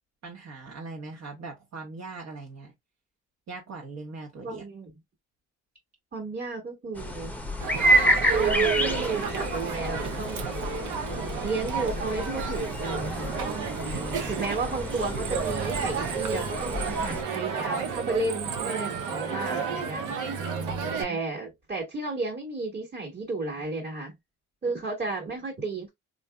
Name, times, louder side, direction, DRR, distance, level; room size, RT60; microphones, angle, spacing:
voice 1, 0.2-2.7 3.5-4.6 13.8-14.5 20.4-21.2, right 3 dB, 60° right, 1.1 m, -40 dB
voice 2, 4.4-4.9 6.1-7.3 8.3-10.4 11.4-13.3 14.3-20.0 21.0-24.1 24.6-25.9, right 3 dB, 30° right, 1.4 m, -33 dB
sound 1, 7.0-17.2, right 1 dB, 5° left, 0.7 m, -29 dB
Crowd, 7.6-21.0, right 6 dB, 85° right, 0.7 m, -31 dB
3.8 x 2.6 x 2.2 m
cardioid pair, 90°, 30 cm